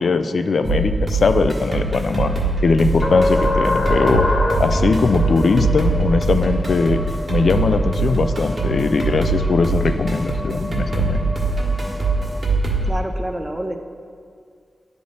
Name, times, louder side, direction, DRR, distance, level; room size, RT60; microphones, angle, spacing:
voice 1, 0.0-2.3 2.6-4.3 4.6-7.0 7.3-11.3, left 4 dB, 70° left, 9 dB, 0.3 m, -20 dB
sound 1, 0.6-12.9, right 3 dB, 45° right, 1.5 m, -23 dB
sound 2, 3.0-8.3, left 2 dB, 50° left, 0.7 m, -24 dB
sound 3, 3.1-12.4, equal, 15° left, 1.1 m, -32 dB
voice 2, 12.8-13.8, right 1 dB, 15° right, 5 dB, 0.6 m, -27 dB
10.0 x 3.4 x 3.9 m, 2.2 s
cardioid pair, 75°, 0 cm